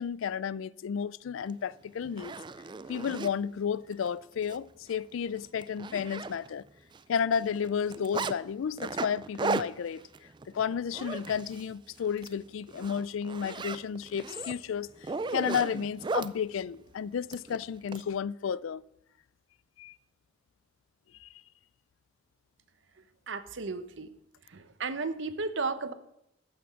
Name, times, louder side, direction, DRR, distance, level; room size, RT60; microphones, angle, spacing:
voice 1, 0.0-2.3 2.9-6.7 7.1-10.0 10.5-14.9 15.3-18.8 19.8-19.9 21.2-21.3, left 7 dB, 75° left, 0.4 m, -32 dB
Zipper (clothing), 1.5-1.6 2.0-3.3 3.9-4.1 4.4-4.6 4.9-5.0 5.4-6.7 6.9-8.3 8.8-11.7 12.1-12.3 12.7-16.3 17.3-18.0, right 4 dB, 25° right, 0.3 m, -36 dB
voice 2, 23.3-24.1 24.5-25.9, right 4 dB, 65° right, 0.8 m, -34 dB
14.0 x 6.0 x 6.3 m
head